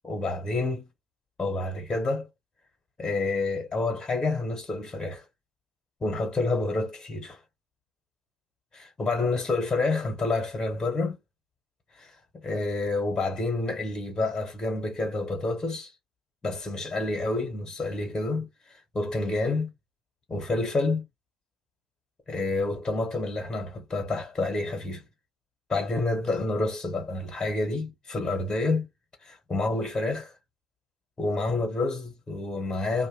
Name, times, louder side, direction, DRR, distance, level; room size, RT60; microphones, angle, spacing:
voice 1, 0.0-0.9 1.4-2.3 3.0-5.2 6.0-7.4 8.7-11.2 11.9-15.9 16.4-19.7 20.3-21.1 22.3-25.0 25.7-28.9 29.2-30.3 31.2-33.1, left 2 dB, 25° left, 1.3 m, -28 dB
2.4 x 2.2 x 3.1 m
hypercardioid pair, 55°, 2 cm